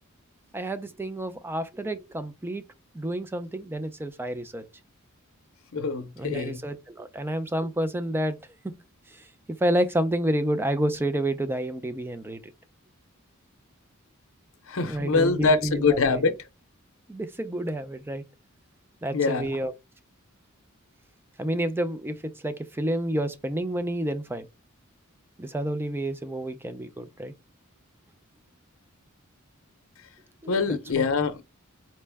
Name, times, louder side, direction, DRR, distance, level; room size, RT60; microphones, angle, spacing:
voice 1, 0.5-2.6 2.9-4.6 6.2-8.4 8.6-8.8 9.6-12.4 14.8-16.2 17.1-18.2 19.0-19.7 21.4-22.2 22.4-24.5 25.4-27.3 30.4-31.0, right 1 dB, 10° right, 0.4 m, -29 dB
voice 2, 5.7-6.6 14.7-16.4 19.1-19.6 30.5-31.5, left 4 dB, 65° left, 0.7 m, -24 dB
4.3 x 2.1 x 3.4 m
head